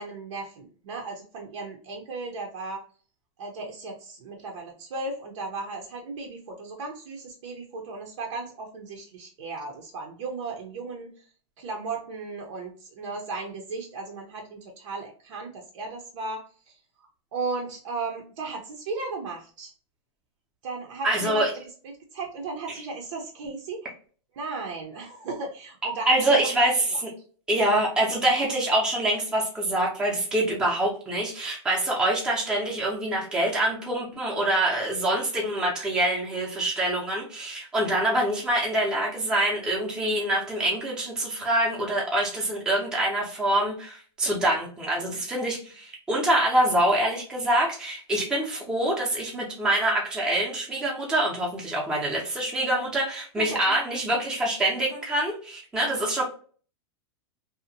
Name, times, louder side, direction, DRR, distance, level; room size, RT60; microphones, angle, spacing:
voice 1, 0.0-2.8 3.4-11.3 11.6-16.8 17.3-19.7 20.6-21.5 22.1-23.9 24.4-26.4 26.9-27.0 46.9-47.0 53.4-53.8, right 3 dB, 85° right, 0 dB, 0.7 m, -35 dB
voice 2, 21.0-21.5 26.1-27.1 27.5-56.2, right 1 dB, 5° right, -3 dB, 0.5 m, -25 dB
2.7 x 2.1 x 2.6 m, 0.42 s
supercardioid pair, 160°, 15 cm